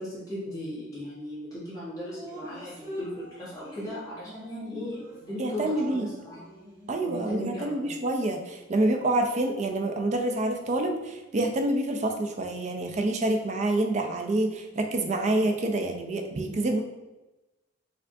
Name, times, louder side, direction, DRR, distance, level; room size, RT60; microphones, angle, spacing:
voice 1, 0.0-6.4 7.0-7.7, left 1 dB, 20° left, -10 dB, 1.2 m, -37 dB
Drip, 2.1-7.3, equal, 10° right, 1.1 m, -44 dB
voice 2, 5.4-6.1 6.9-16.8, right 2 dB, 35° right, 4 dB, 0.4 m, -27 dB
4.4 x 2.5 x 2.6 m, 1.0 s
head